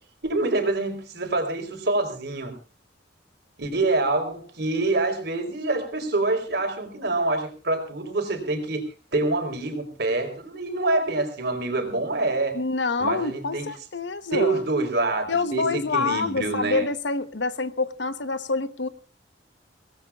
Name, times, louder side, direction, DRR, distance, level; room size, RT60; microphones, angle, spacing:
voice 1, 0.2-2.5 3.6-8.8 9.1-12.6 13.0-13.7 14.3-16.9, right 2 dB, 65° right, 5 dB, 3.9 m, -26 dB
voice 2, 12.5-14.6 15.3-18.9, left 3 dB, 75° left, 12 dB, 1.0 m, -27 dB
25.0 x 18.0 x 2.4 m, 0.34 s
head